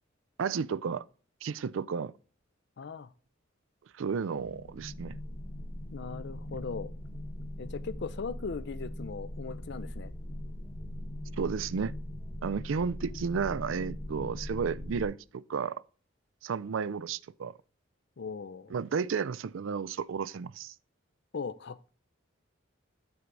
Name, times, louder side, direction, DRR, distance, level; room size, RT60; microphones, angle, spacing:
voice 1, 0.4-1.0 1.4-2.1 3.9-5.2 11.4-11.9 12.4-15.8 16.4-17.5 18.7-20.7, right 6 dB, 75° right, 0.4 m, -32 dB
voice 2, 2.8-3.1 5.9-6.9 7.6-10.1 18.2-18.7 21.3-21.9, left 5 dB, 60° left, 0.5 m, -39 dB
sound 1, 4.3-15.1, left 1 dB, 35° left, 1.1 m, -40 dB
9.5 x 4.6 x 3.9 m
head